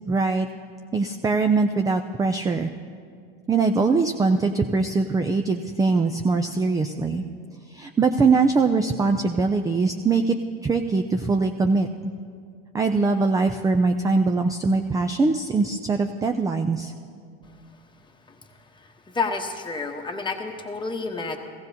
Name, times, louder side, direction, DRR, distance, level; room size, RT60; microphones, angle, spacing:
voice 1, 0.1-0.5 0.9-2.7 3.5-7.2 7.7-10.3 10.6-12.1 12.7-16.9, right 4 dB, 10° right, 6 dB, 0.3 m, -22 dB
voice 2, 19.1-21.4, left 4 dB, 15° left, 3 dB, 1.1 m, -29 dB
16.0 x 15.0 x 2.8 m, 2.2 s
supercardioid pair, 105°, 30 cm